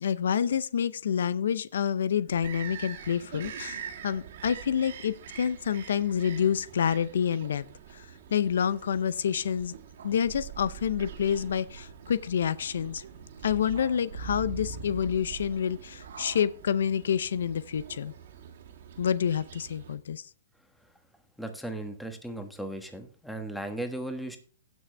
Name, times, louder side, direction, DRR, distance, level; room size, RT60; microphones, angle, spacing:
voice 1, 0.0-7.7 7.9-9.8 10.0-13.0 13.4-18.1 19.0-20.2, left 8 dB, 80° left, 17 dB, 0.6 m, -28 dB
Bird vocalization bird call bird song, 2.3-20.0, right 8 dB, 60° right, 2.0 m, -46 dB
sound 1, 10.0-16.5, right 5 dB, 85° right, 2.0 m, -43 dB
voice 2, 21.4-24.4, right 1 dB, ahead, 6 dB, 1.3 m, -36 dB
16.0 x 6.2 x 3.4 m, 0.40 s
hypercardioid pair, 145°, 0 cm